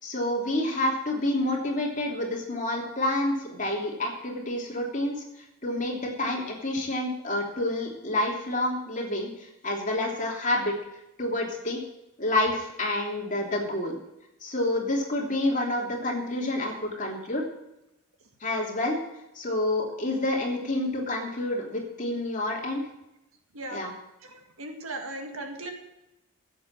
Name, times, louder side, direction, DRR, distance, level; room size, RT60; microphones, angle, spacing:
voice 1, 0.0-5.2 5.6-10.7 11.2-11.8 12.2-14.0 14.4-17.4 18.4-19.0 19.3-22.8 23.7-23.9, left 1 dB, 35° left, -1 dB, 3.1 m, -28 dB
voice 2, 24.2-25.7, right 2 dB, 70° right, 4 dB, 2.1 m, -37 dB
15.0 x 8.1 x 7.6 m, 0.88 s
head